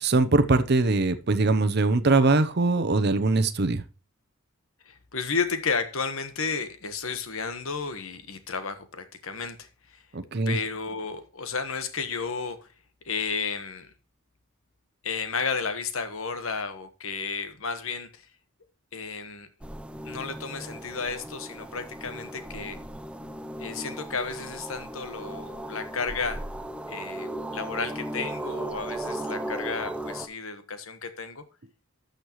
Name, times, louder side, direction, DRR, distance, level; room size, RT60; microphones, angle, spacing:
voice 1, 0.0-3.8 10.1-10.6, right 3 dB, 50° right, 0.7 m, -22 dB
voice 2, 4.8-10.0 10.5-12.7 13.0-13.9 15.0-18.3 18.9-19.5 20.0-22.8 23.6-26.5 26.9-31.4, left 5 dB, 75° left, 1.3 m, -32 dB
sound 1, 19.6-30.3, right 1 dB, 5° right, 0.6 m, -36 dB
12.0 x 6.5 x 3.1 m
head